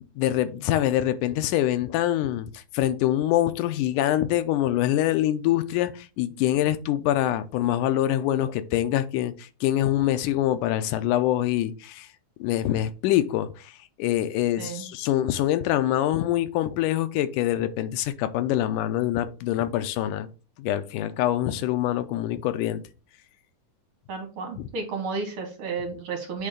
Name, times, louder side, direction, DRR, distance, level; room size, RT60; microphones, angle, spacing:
voice 1, 0.2-12.1 12.4-20.3 20.6-22.8 24.6-24.7, left 13 dB, 90° left, 2.2 m, -25 dB
voice 2, 24.1-26.5, right 4 dB, 55° right, 2.8 m, -32 dB
8.3 x 3.3 x 5.1 m
omnidirectional pair, 3.5 m